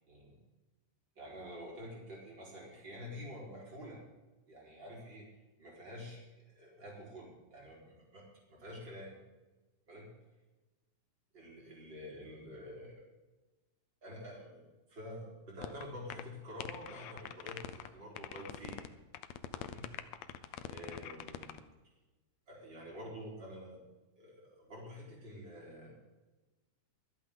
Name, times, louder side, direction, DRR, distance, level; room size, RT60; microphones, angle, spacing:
voice 1, 1.2-4.0 4.5-5.3 5.6-6.2 6.5-9.1 9.9-10.1 11.3-13.0 14.0-18.9 19.5-19.9 20.7-21.6 22.5-23.8 24.2-25.9, equal, 30° right, -4 dB, 4.9 m, -48 dB
sound 1, 15.6-15.8 16.1-16.2 16.6-17.9 18.2-18.9 19.1-21.6, left 12 dB, 80° left, 1.6 m, -43 dB
24.5 x 8.6 x 3.9 m, 1.2 s
omnidirectional pair, 3.9 m